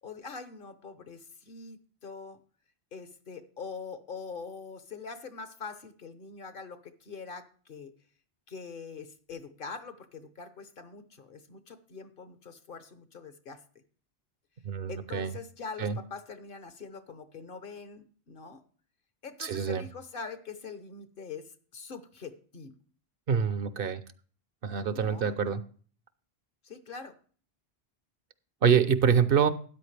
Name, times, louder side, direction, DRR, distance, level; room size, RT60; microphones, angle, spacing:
voice 1, 0.0-2.4 2.9-7.9 8.5-13.6 14.9-18.6 19.2-22.7 24.9-25.3 26.6-27.2, left 5 dB, 60° left, 10 dB, 1.1 m, -43 dB
voice 2, 14.6-15.3 15.8-16.0 19.4-19.8 23.3-24.0 24.6-25.6 28.6-29.5, right 7 dB, 65° right, 13 dB, 0.9 m, -25 dB
13.0 x 9.3 x 3.3 m, 0.43 s
omnidirectional pair, 1.0 m